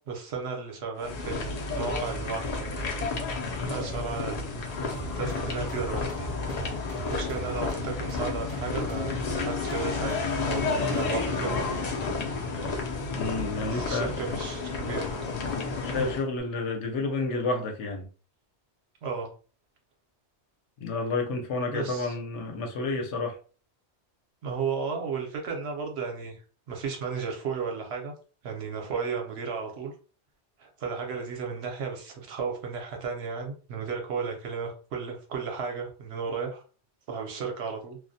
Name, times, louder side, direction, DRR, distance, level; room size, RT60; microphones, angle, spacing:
voice 1, 0.0-2.8 3.7-4.8 5.2-6.3 7.1-11.6 13.6-15.2 16.0-16.1 19.0-19.3 21.7-22.1 24.4-26.4 26.7-28.1 28.4-29.9 30.6-36.6 37.1-38.0, right 5 dB, 70° right, 0.8 m, -34 dB
sound 1, 1.0-16.2, left 4 dB, 55° left, 0.5 m, -31 dB
sound 2, 4.9-11.6, equal, 40° right, 0.5 m, -40 dB
voice 2, 13.1-14.2 15.5-18.1 20.8-23.4, left 3 dB, 80° left, 0.9 m, -30 dB
2.3 x 2.0 x 2.6 m
omnidirectional pair, 1.2 m